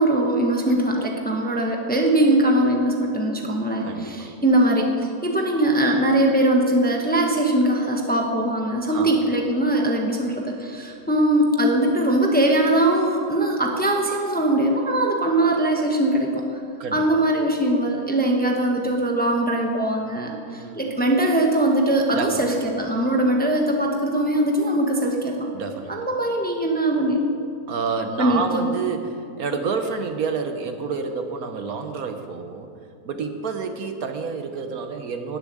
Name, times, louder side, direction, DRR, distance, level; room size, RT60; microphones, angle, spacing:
voice 1, 0.0-4.9 5.2-16.6 16.9-25.5 25.9-27.3 28.2-28.7, right 1 dB, 5° left, 1 dB, 1.0 m, -21 dB
voice 2, 3.8-4.3 8.9-9.1 16.8-17.2 20.5-20.8 22.1-22.5 25.5-25.9 27.7-32.7 33.0-35.4, right 5 dB, 65° right, 7 dB, 1.3 m, -29 dB
13.5 x 7.0 x 9.6 m, 2.4 s
omnidirectional pair, 1.7 m